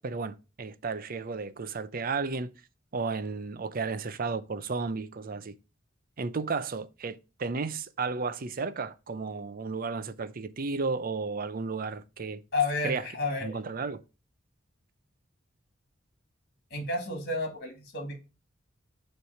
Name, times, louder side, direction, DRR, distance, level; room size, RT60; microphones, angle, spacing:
voice 1, 0.0-2.5 2.9-5.5 6.2-12.4 12.8-13.0 13.4-14.0, right 4 dB, 45° right, 0.6 m, -33 dB
voice 2, 12.5-13.5 16.7-18.2, left 3 dB, 50° left, 2.2 m, -31 dB
7.0 x 3.3 x 5.8 m
head